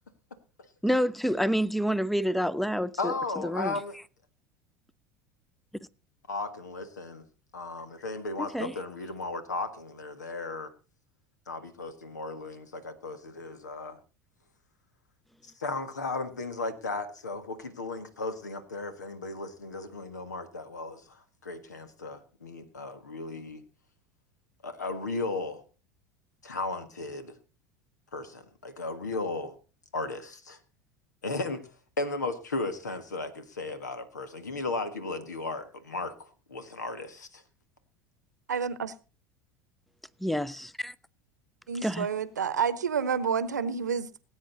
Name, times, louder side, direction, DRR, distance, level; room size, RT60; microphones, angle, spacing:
voice 1, 0.8-3.8 8.4-8.7 40.2-40.9 41.8-42.1, equal, ahead, 0.6 m, -28 dB
voice 2, 3.0-4.0 6.3-7.2 7.5-10.7 11.5-14.0 15.4-23.6 24.6-25.6 26.4-27.3 28.1-29.6 29.9-30.6 31.2-31.6 32.0-37.4, left 3 dB, 85° left, 1.6 m, -35 dB
voice 3, 38.5-38.9 41.7-44.1, right 6 dB, 85° right, 0.9 m, -29 dB
19.0 x 8.9 x 4.0 m
figure-of-eight pair, 75°, 9 cm